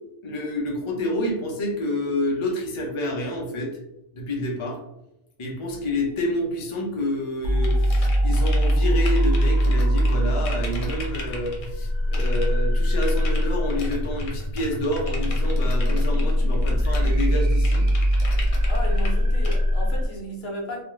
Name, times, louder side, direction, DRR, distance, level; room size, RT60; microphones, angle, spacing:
voice 1, 0.2-3.7 4.1-4.8 5.4-17.9, left 1 dB, 40° left, -1 dB, 0.4 m, -28 dB
sound 1, 7.4-20.1, equal, 75° right, 1.0 m, -22 dB
sound 2, 7.6-8.7 9.1-11.6 12.1-12.5 13.0-19.1 19.4-19.6, left 3 dB, 85° left, 1.1 m, -38 dB
voice 2, 18.7-20.8, equal, 60° left, 0 dB, 0.9 m, -33 dB
2.4 x 2.3 x 3.0 m, 0.86 s
omnidirectional pair, 1.3 m